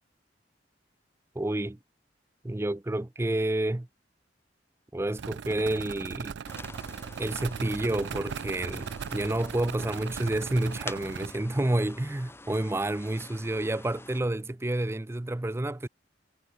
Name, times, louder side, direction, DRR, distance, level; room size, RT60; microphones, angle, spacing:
voice 1, 1.4-1.8 2.4-3.9 4.9-6.4 7.2-15.9, right 1 dB, 15° right, 0.5 m, -29 dB
sound 1, 5.2-11.3, right 6 dB, 70° right, 0.4 m, -38 dB
sound 2, 6.5-14.2, left 2 dB, 15° left, 3.8 m, -47 dB
head